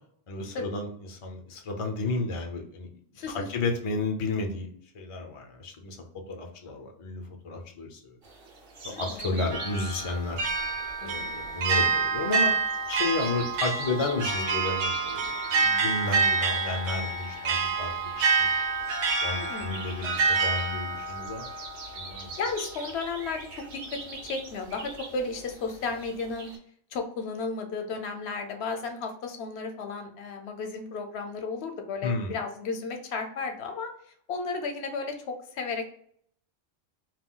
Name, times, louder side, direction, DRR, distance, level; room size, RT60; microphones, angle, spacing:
voice 1, 0.3-2.9 3.3-4.7 4.9-6.0 6.3-8.2 9.0-10.4 11.0-12.5 12.9-18.1 18.4-18.7 19.0-21.5 21.9-22.3 32.0-32.3, left 3 dB, 45° left, 2 dB, 0.4 m, -32 dB
voice 2, 3.2-3.5 8.9-9.4 11.0-11.3 19.3-19.8 22.4-23.4 23.7-26.5 26.9-33.9 34.3-35.9, left 4 dB, 70° left, 5 dB, 0.8 m, -34 dB
sound 1, 8.2-26.6, right 3 dB, 60° right, 0.7 m, -45 dB
sound 2, 9.5-22.5, right 5 dB, 85° right, 0.9 m, -28 dB
2.3 x 2.2 x 3.6 m, 0.63 s
omnidirectional pair, 1.1 m